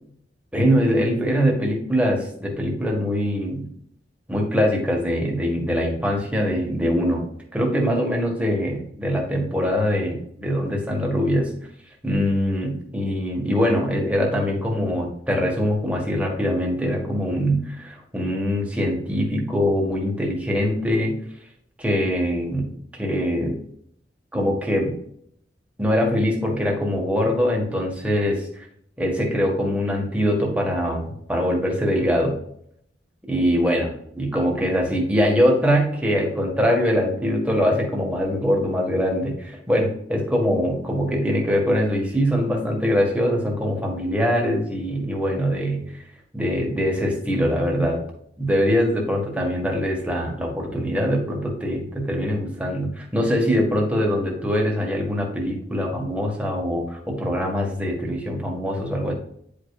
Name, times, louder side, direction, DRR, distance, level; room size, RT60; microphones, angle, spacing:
voice 1, 0.5-3.7 4.3-7.2 7.5-11.5 12.0-21.2 21.8-22.7 23.0-23.6 24.3-25.0 25.8-28.7 29.0-32.4 33.3-45.8 46.3-48.0 48.4-59.1, equal, 5° right, -1 dB, 1.6 m, -23 dB
10.0 x 5.0 x 2.4 m, 0.69 s
head